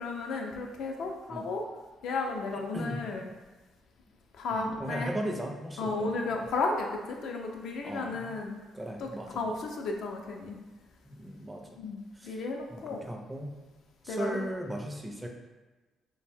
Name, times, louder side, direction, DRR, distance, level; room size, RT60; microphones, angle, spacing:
voice 1, 0.0-1.6 2.0-3.3 4.3-5.1 5.8-8.6 9.0-10.6 11.8-13.0 14.1-14.5, left 3 dB, 75° left, 2 dB, 0.4 m, -34 dB
voice 2, 2.7-3.0 4.5-6.4 7.8-8.4 8.7-9.5 11.0-11.7 12.2-12.4 12.7-13.5 14.0-15.3, right 1 dB, 15° right, 2 dB, 0.4 m, -37 dB
2.6 x 2.1 x 3.3 m, 1.2 s
cardioid pair, 90°, 0 cm